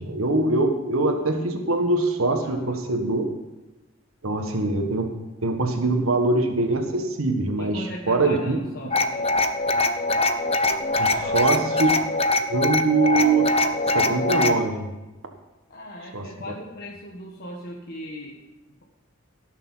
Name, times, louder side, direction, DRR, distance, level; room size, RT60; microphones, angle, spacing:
voice 1, 0.0-3.2 4.2-5.1 5.4-8.6 11.0-11.9 12.5-13.5 13.9-14.9 16.1-16.2, right 2 dB, 85° right, 4 dB, 1.4 m, -23 dB
voice 2, 2.4-2.8 7.6-9.3 11.0-11.6 15.7-18.4, equal, 50° left, -2 dB, 1.5 m, -38 dB
sound 1, 8.9-14.6, left 2 dB, 30° left, 0.7 m, -23 dB
18.0 x 6.7 x 5.7 m, 1.0 s
head